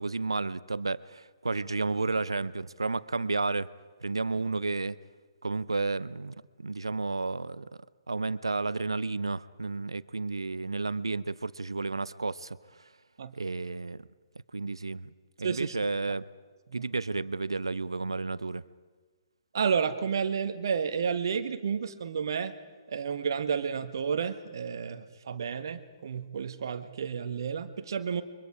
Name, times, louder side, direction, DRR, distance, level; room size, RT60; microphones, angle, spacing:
voice 1, 0.0-3.7 4.0-5.0 5.4-7.7 8.1-12.6 13.3-14.1 14.5-15.1 15.4-16.2 16.7-18.6, right 3 dB, 75° right, 18 dB, 0.7 m, -32 dB
voice 2, 15.4-15.8 16.7-16.9 19.5-22.5 22.9-28.2, right 6 dB, 55° right, 10 dB, 1.5 m, -31 dB
29.5 x 24.0 x 4.8 m, 1.4 s
figure-of-eight pair, 125°, 3 cm